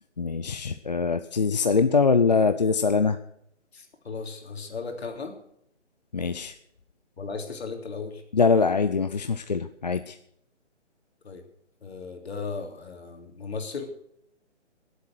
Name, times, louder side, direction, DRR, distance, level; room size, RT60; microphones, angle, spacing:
voice 1, 0.2-3.2 6.1-6.6 8.3-10.2, left 4 dB, 35° left, 9 dB, 0.5 m, -23 dB
voice 2, 3.7-5.3 7.2-8.2 11.2-11.4 11.8-13.8, left 4 dB, 55° left, 3 dB, 3.2 m, -36 dB
18.5 x 8.2 x 6.4 m, 0.73 s
hypercardioid pair, 160°, 37 cm